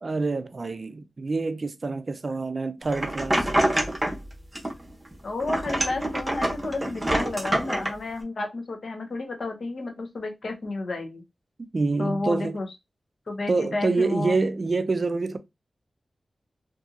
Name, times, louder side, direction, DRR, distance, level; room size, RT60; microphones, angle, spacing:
voice 1, 0.0-3.5 11.7-12.6 13.5-15.4, right 3 dB, 50° right, 0.3 m, -26 dB
sound 1, 2.9-4.2 4.5-5.1 5.4-7.9, right 1 dB, 25° right, 0.8 m, -26 dB
voice 2, 5.2-11.2 12.0-12.7 13.3-14.4, left 2 dB, 70° left, 0.7 m, -31 dB
2.7 x 2.6 x 2.4 m
wide cardioid pair, 65°, 0 cm